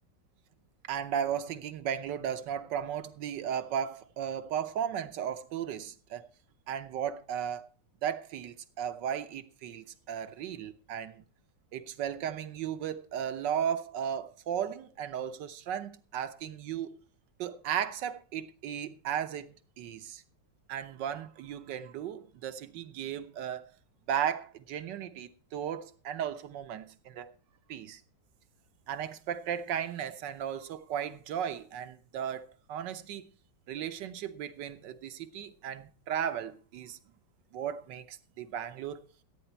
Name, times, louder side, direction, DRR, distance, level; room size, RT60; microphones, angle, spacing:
voice 1, 0.9-6.3 6.7-7.7 8.0-11.2 11.7-17.0 17.4-20.2 20.7-23.7 24.1-27.3 27.7-28.0 28.9-33.3 33.7-37.0 37.5-39.1, right 9 dB, 75° right, 1.5 m, -35 dB
14.5 x 9.1 x 4.5 m
omnidirectional pair, 2.0 m